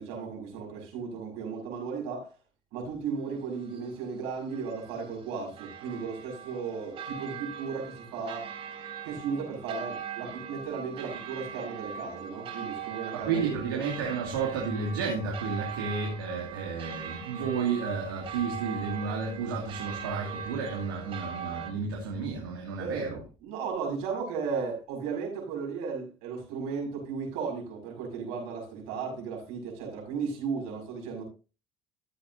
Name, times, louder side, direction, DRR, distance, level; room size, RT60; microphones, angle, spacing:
voice 1, 0.0-2.3 2.7-8.5 9.0-13.8 22.8-31.2, right 5 dB, 70° right, 6.1 m, -35 dB
sound 1, 3.1-21.7, right 7 dB, 55° right, 2.8 m, -41 dB
voice 2, 13.1-23.2, right 5 dB, 85° right, 2.4 m, -32 dB
14.0 x 8.1 x 2.7 m
hypercardioid pair, 75°, 11 cm